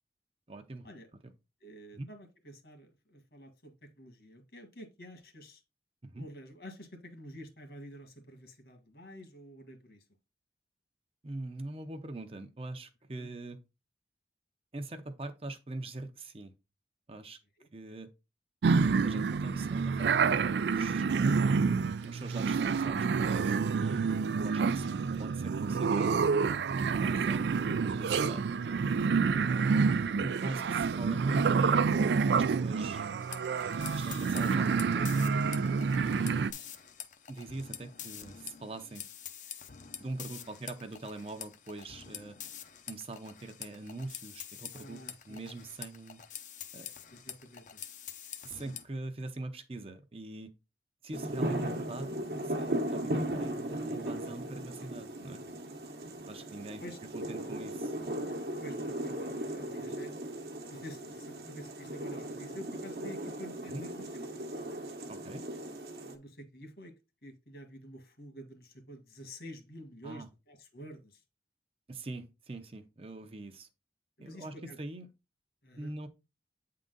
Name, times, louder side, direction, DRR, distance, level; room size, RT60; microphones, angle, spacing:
voice 1, 0.5-0.9 1.9-2.1 6.0-6.3 11.2-13.6 14.7-16.5 17.1-17.4 17.7-18.1 18.8-21.6 22.0-24.0 24.4-24.9 25.2-28.5 29.5-29.9 30.1-31.9 32.3-33.1 33.7-35.2 36.0-36.8 37.3-39.0 40.0-42.4 42.9-45.0 45.3-46.2 46.7-46.9 48.4-50.5 51.0-52.1 52.4-55.4 56.3-56.8 57.1-57.9 63.7-63.8 65.1-65.4 70.0-70.3 71.9-73.7 74.2-75.1 75.8-76.1, right 2 dB, 35° right, 0.6 m, -43 dB
voice 2, 1.6-5.6 6.2-10.0 13.1-13.3 17.6-17.7 44.7-45.4 47.1-47.8 51.4-51.6 56.8-57.0 58.6-60.1 60.7-64.4 66.0-66.9 67.2-71.2 74.2-74.8 75.6-75.9, equal, 65° left, 1.8 m, -49 dB
sound 1, 18.6-36.5, right 5 dB, 80° right, 0.4 m, -28 dB
sound 2, 33.2-48.8, left 9 dB, 45° left, 0.6 m, -46 dB
sound 3, 51.1-66.1, right 1 dB, 60° right, 1.0 m, -37 dB
8.4 x 3.8 x 3.8 m
head